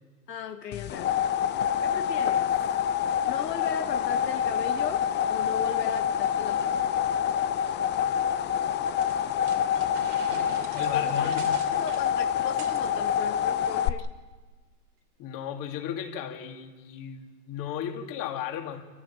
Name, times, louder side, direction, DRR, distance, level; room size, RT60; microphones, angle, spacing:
voice 1, 0.3-1.1 1.6-2.5 3.0-6.9 10.6-11.3 11.7-14.1, left 7 dB, 90° left, 4 dB, 1.6 m, -38 dB
sound 1, 0.7-13.9, left 9 dB, 20° left, 0.6 m, -26 dB
sound 2, 9.0-12.9, right 8 dB, 65° right, 2.8 m, -45 dB
voice 2, 10.7-11.8 15.2-18.8, left 9 dB, 40° left, 3 dB, 2.7 m, -35 dB
27.0 x 15.0 x 8.9 m, 1.4 s
hypercardioid pair, 115°, 48 cm